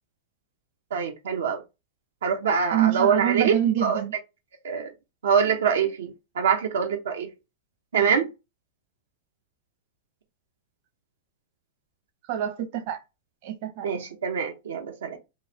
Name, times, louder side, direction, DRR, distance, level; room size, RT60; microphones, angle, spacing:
voice 1, 0.9-1.6 2.2-3.5 3.8-4.0 4.6-4.9 5.2-7.3 7.9-8.3 13.8-15.2, right 7 dB, 90° right, 0.7 m, -24 dB
voice 2, 2.7-4.1 12.3-13.0 13.4-13.9, right 11 dB, 55° right, 0.9 m, -25 dB
3.9 x 2.5 x 2.8 m
hypercardioid pair, 130°, 0 cm